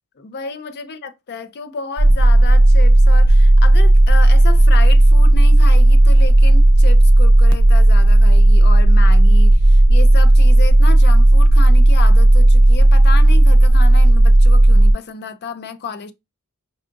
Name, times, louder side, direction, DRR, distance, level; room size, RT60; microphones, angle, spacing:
voice 1, 0.2-16.1, left 4 dB, 50° left, 0.5 m, -31 dB
sound 1, 2.0-14.9, right 1 dB, 90° right, 0.5 m, -10 dB
4.7 x 2.4 x 2.5 m
head